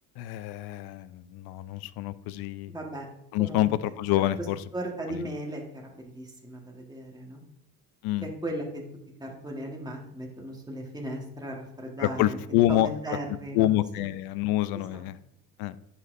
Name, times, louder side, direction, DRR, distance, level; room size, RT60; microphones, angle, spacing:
voice 1, 0.2-2.7 3.3-4.6 5.1-5.3 8.0-8.3 12.0-12.9 13.5-15.2 15.6-15.8, left 14 dB, 65° left, 16 dB, 0.5 m, -27 dB
voice 2, 2.7-3.1 3.4-3.7 4.7-7.4 8.2-8.9 9.2-13.7 14.7-15.0, right 1 dB, 10° right, 0 dB, 1.4 m, -37 dB
10.5 x 4.1 x 2.6 m, 0.77 s
supercardioid pair, 90°, 40 cm